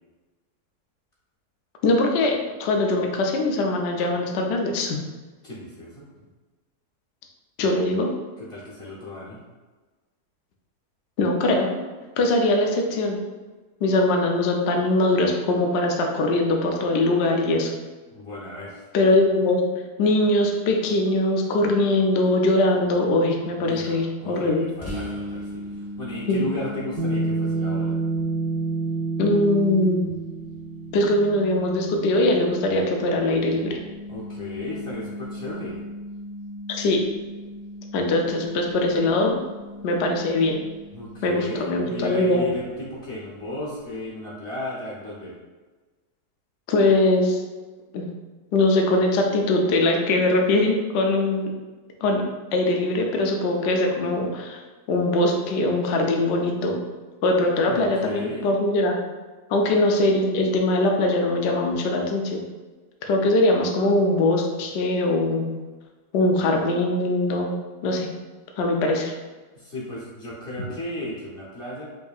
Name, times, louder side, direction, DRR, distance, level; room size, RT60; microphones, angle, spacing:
voice 1, 1.8-5.0 7.6-8.1 11.2-11.8 12.2-13.2 13.8-17.7 18.9-19.6 20.0-24.6 26.3-26.4 29.2-30.0 30.9-33.8 36.7-37.0 37.9-39.4 39.8-40.6 41.2-42.4 46.7-47.4 47.9-48.1 48.5-51.5 52.0-52.2 52.5-54.6 54.9-56.8 57.2-59.0 59.5-62.4 63.0-65.6 66.1-67.6 67.8-68.1 68.6-69.1, left 2 dB, 70° left, 2 dB, 0.6 m, -21 dB
voice 2, 5.4-6.0 8.4-9.4 18.1-18.8 23.6-28.0 34.1-35.8 40.9-45.3 57.7-58.5 69.5-71.9, left 1 dB, 45° left, -6 dB, 0.9 m, -35 dB
sound 1, 24.8-42.3, equal, 25° left, 0.3 m, -39 dB
sound 2, 27.0-33.7, right 3 dB, 60° right, 0.8 m, -29 dB
5.2 x 2.7 x 2.3 m, 1.3 s
omnidirectional pair, 1.7 m